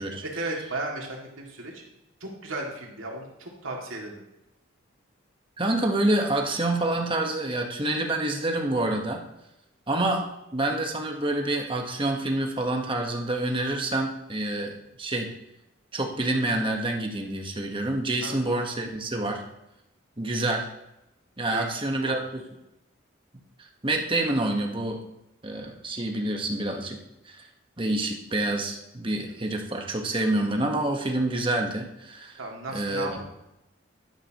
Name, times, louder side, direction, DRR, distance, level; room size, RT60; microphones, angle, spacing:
voice 1, 0.2-1.8 2.2-4.2 18.2-18.4 21.5-22.2 32.4-33.2, right 2 dB, 75° right, 0 dB, 2.4 m, -35 dB
voice 2, 5.6-9.2 9.9-15.3 15.9-19.4 20.2-20.7 21.4-22.4 23.6-25.0 25.4-27.0 27.2-27.5 27.8-32.4 32.7-33.2, right 2 dB, 25° right, 2 dB, 1.3 m, -27 dB
11.5 x 11.0 x 3.0 m, 0.89 s
head